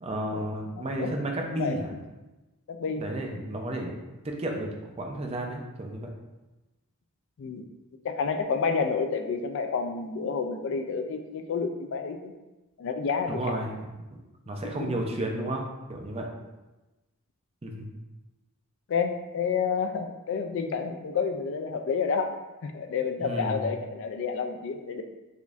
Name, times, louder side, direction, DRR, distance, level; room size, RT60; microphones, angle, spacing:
voice 1, 0.0-1.9 3.0-3.9 4.2-4.7 5.0-6.1 13.3-13.9 14.5-16.3 17.6-17.9 23.2-23.6, right 1 dB, 25° right, 1 dB, 0.4 m, -32 dB
voice 2, 0.8-1.8 2.7-3.1 7.4-7.6 8.0-12.3 12.8-13.6 14.8-15.0 18.9-22.3 22.6-25.0, left 5 dB, 55° left, 6 dB, 0.3 m, -29 dB
4.9 x 2.6 x 2.4 m, 1.1 s
head